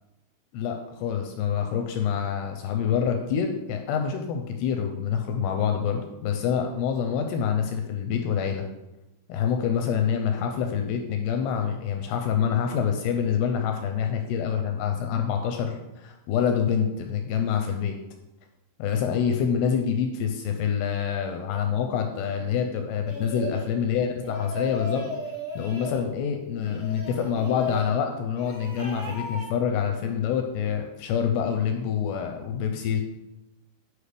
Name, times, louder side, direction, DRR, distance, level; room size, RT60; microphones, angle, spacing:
voice 1, 0.5-8.6 9.3-17.9 18.8-25.0 25.6-33.0, left 7 dB, 85° left, 4 dB, 2.4 m, -26 dB
sound 1, 23.0-23.7 24.2-26.0 26.6-27.9 28.3-29.5, left 1 dB, 15° right, 0.9 m, -35 dB
8.0 x 5.0 x 3.4 m, 0.96 s
omnidirectional pair, 5.1 m